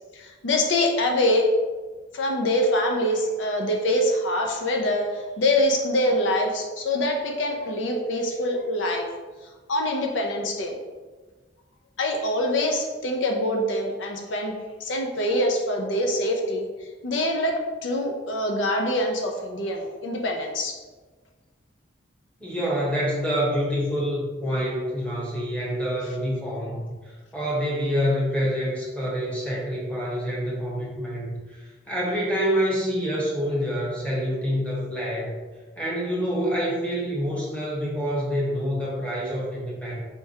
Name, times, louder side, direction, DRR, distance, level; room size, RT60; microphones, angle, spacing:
voice 1, 0.1-1.5 2.1-9.1 9.7-10.8 12.0-14.5 14.8-16.6 17.0-20.8, left 1 dB, 80° left, 2 dB, 0.6 m, -24 dB
voice 2, 22.4-35.4 35.8-40.0, equal, 5° left, -5 dB, 1.1 m, -27 dB
4.4 x 3.5 x 2.8 m, 1.3 s
head